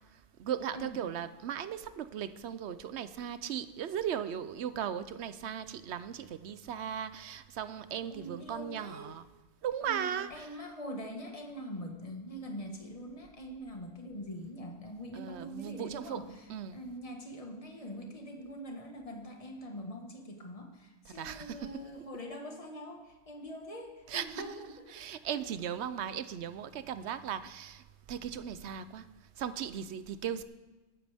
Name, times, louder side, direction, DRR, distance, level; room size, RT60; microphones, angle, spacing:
voice 1, 0.4-9.2 9.6-10.5 15.1-16.2 16.5-16.8 21.1-21.7 24.1-24.4 24.9-27.8 28.1-29.1 29.4-30.4, right 9 dB, 70° right, 0.9 m, -37 dB
voice 2, 8.1-9.1 9.8-25.0 30.3-30.4, equal, 30° left, 1.6 m, -43 dB
21.0 x 9.2 x 3.5 m
omnidirectional pair, 1.2 m